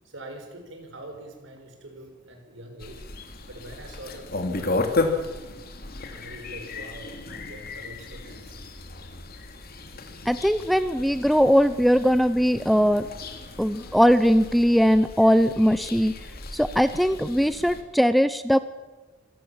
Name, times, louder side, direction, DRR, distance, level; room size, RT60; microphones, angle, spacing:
voice 1, 0.0-3.0 3.5-5.4 6.1-8.6, right 1 dB, 70° right, 4 dB, 5.9 m, -43 dB
sound 1, 2.8-17.8, left 3 dB, 55° left, 2.8 m, -34 dB
voice 2, 10.3-13.0 13.6-16.1 16.5-18.6, equal, ahead, 13 dB, 0.7 m, -20 dB
26.5 x 16.5 x 7.4 m, 1.2 s
head